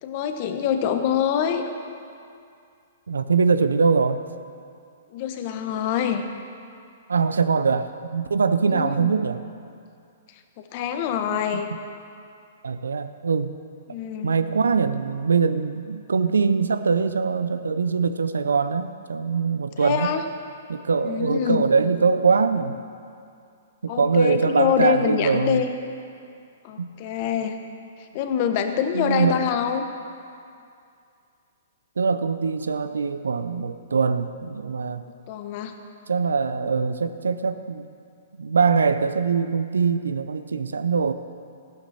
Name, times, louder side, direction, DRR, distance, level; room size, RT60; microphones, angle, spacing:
voice 1, 0.0-1.6 5.1-6.2 8.6-9.1 10.6-11.7 13.9-14.3 19.8-20.2 21.0-21.7 23.9-25.7 26.6-27.6 28.0-29.8 35.0-35.7, left 8 dB, 45° left, 7 dB, 1.1 m, -25 dB
voice 2, 3.1-4.2 7.1-9.4 12.6-13.5 14.2-20.2 20.7-22.8 23.8-25.6 26.8-26.9 28.9-29.4 32.0-35.0 36.1-37.9 38.4-41.1, right 5 dB, 85° right, 11 dB, 0.6 m, -22 dB
14.0 x 12.0 x 4.3 m, 2.4 s
hypercardioid pair, 125°, 0 cm